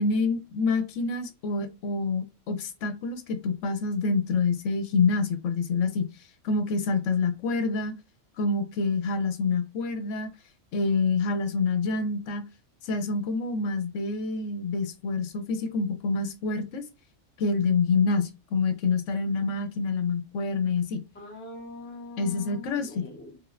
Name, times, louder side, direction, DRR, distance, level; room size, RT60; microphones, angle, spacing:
voice 1, 0.0-6.1 6.4-7.9 8.4-10.3 10.7-12.4 12.8-16.8 17.4-21.0 22.2-22.9, left 4 dB, 75° left, 0.9 m, -27 dB
voice 2, 21.1-23.4, left 1 dB, 15° left, 0.4 m, -43 dB
3.2 x 3.1 x 2.4 m
omnidirectional pair, 1.3 m